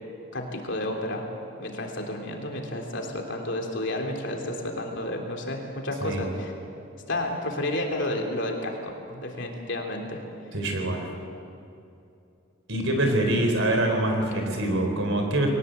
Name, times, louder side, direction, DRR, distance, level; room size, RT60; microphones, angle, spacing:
voice 1, 0.3-1.2 1.6-6.5 7.1-10.2 14.0-14.4, left 1 dB, 55° left, 2 dB, 3.3 m, -31 dB
voice 2, 10.5-11.1 12.7-15.5, right 1 dB, 65° right, 3 dB, 4.4 m, -25 dB
22.5 x 19.0 x 8.1 m, 2.7 s
head